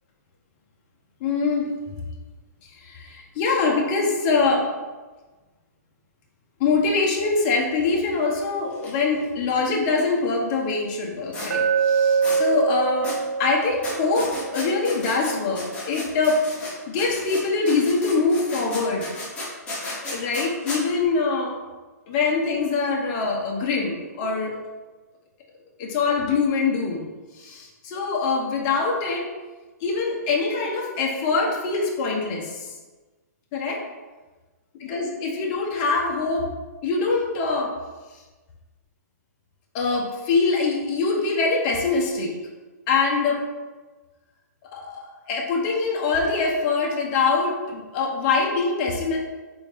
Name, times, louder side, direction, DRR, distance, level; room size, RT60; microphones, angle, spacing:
voice 1, 1.2-1.7 2.8-4.7 6.6-12.0 12.4-19.1 20.0-21.5 22.1-24.5 25.8-27.1 27.4-29.3 29.8-32.7 33.5-33.8 34.8-36.5 36.8-37.7 39.7-42.3 42.9-43.4 44.7-49.2, left 4 dB, 30° left, 0 dB, 0.9 m, -24 dB
sound 1, 8.7-8.9 9.1-9.2 11.3-11.5 12.2-12.4 13.0-13.2 13.8-16.7 17.0-20.8, left 1 dB, 15° left, 1.1 m, -34 dB
Glass, 11.5-15.6, right 5 dB, 90° right, 0.9 m, -25 dB
4.1 x 3.7 x 3.4 m, 1.3 s
hypercardioid pair, 155°, 9 cm